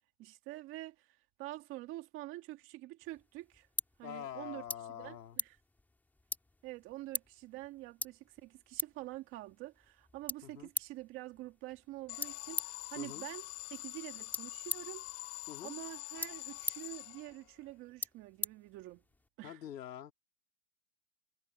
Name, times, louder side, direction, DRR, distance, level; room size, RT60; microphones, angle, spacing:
voice 1, 0.2-3.7 4.0-5.6 6.6-15.1 15.6-19.0 19.4-19.6, right 17 dB, 25° right, 2.0 m, -47 dB
sound 1, 3.0-19.3, left 2 dB, 5° left, 2.1 m, -45 dB
voice 2, 4.0-5.4 10.4-10.7 13.0-13.3 15.5-15.7 19.4-20.1, left 10 dB, 85° left, 3.5 m, -45 dB
Alarm, 12.1-17.6, left 24 dB, 30° left, 5.0 m, -45 dB
supercardioid pair, 160°, 49 cm